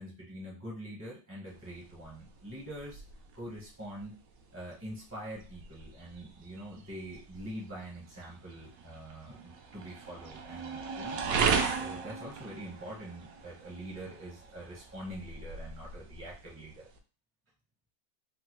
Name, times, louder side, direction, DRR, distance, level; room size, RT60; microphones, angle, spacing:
voice 1, 0.0-3.0 3.3-4.2 4.5-11.2 11.7-16.9, right 1 dB, 15° right, -4 dB, 0.5 m, -44 dB
sound 1, 1.5-17.0, right 5 dB, 70° right, 0.8 m, -38 dB
3.7 x 2.1 x 3.0 m, 0.34 s
omnidirectional pair, 1.9 m